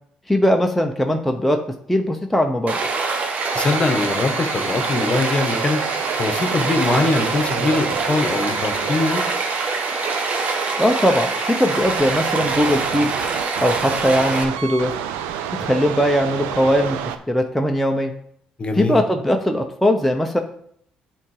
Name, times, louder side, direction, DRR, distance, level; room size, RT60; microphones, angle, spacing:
voice 1, 0.3-1.6 1.9-2.8 10.8-13.1 13.6-14.9 15.6-17.0 17.3-18.1 18.7-20.4, equal, 5° left, 3 dB, 0.8 m, -19 dB
Stream, 2.7-14.4, right 4 dB, 50° right, 1.2 m, -24 dB
sound 1, 3.4-17.2, right 8 dB, 90° right, 0.5 m, -31 dB
voice 2, 3.5-5.8 6.2-9.2 18.6-19.0, left 3 dB, 35° left, 6 dB, 1.2 m, -22 dB
8.4 x 3.7 x 4.9 m, 0.66 s
supercardioid pair, 70°, 3 cm